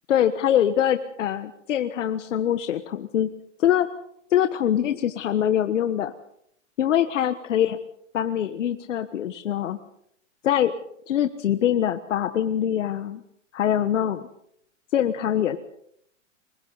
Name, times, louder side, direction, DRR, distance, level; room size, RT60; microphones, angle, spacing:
voice 1, 0.1-3.3 3.6-3.9 4.3-6.1 6.8-7.8 8.1-9.8 10.4-10.7 11.1-13.2 13.5-14.3 14.9-15.6, left 10 dB, 85° left, 9 dB, 1.4 m, -23 dB
30.0 x 22.5 x 4.1 m, 0.70 s
hypercardioid pair, 145°, 36 cm